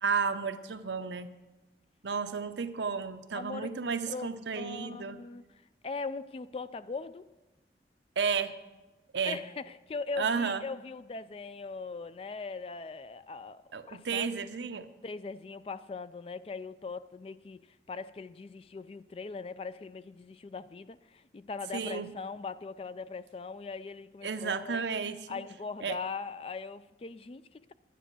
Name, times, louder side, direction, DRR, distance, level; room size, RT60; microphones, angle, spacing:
voice 1, 0.0-1.3 2.0-5.2 8.2-8.5 9.1-9.4 10.2-10.6 13.7-14.9 21.7-22.1 24.2-25.4 25.8-26.0, right 5 dB, 90° right, 0.7 m, -32 dB
voice 2, 3.3-3.7 4.1-5.4 5.8-7.3 9.2-14.3 15.0-24.8 25.3-27.7, left 4 dB, 35° left, 0.3 m, -40 dB
11.0 x 9.3 x 6.1 m
head